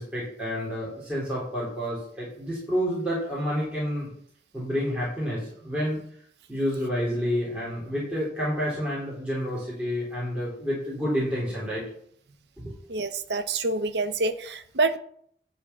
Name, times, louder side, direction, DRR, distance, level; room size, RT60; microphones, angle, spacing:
voice 1, 0.0-4.1 4.5-6.0 6.5-11.8 12.6-12.7, equal, 5° right, -8 dB, 3.6 m, -29 dB
voice 2, 12.9-15.0, right 3 dB, 80° right, 9 dB, 0.9 m, -27 dB
11.0 x 4.6 x 7.1 m, 0.64 s
head